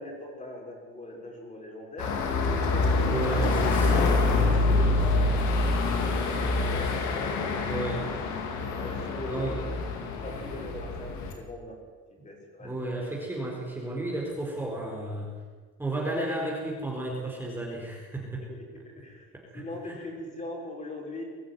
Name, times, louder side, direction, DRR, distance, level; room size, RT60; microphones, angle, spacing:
voice 1, 0.0-2.2 2.6-3.6 4.0-5.4 5.8-8.0 8.8-9.8 10.2-11.8 12.1-13.1 18.4-19.3 19.5-21.2, left 1 dB, 25° left, -1 dB, 6.6 m, -41 dB
sound 1, 2.0-11.3, left 3 dB, 80° left, 3.9 m, -26 dB
voice 2, 3.1-4.2 7.7-8.1 9.3-9.5 12.6-15.3 15.8-18.5 19.3-20.0, right 1 dB, 5° right, -3 dB, 4.5 m, -33 dB
22.5 x 14.5 x 9.6 m, 1.5 s
cardioid pair, 145°, 29 cm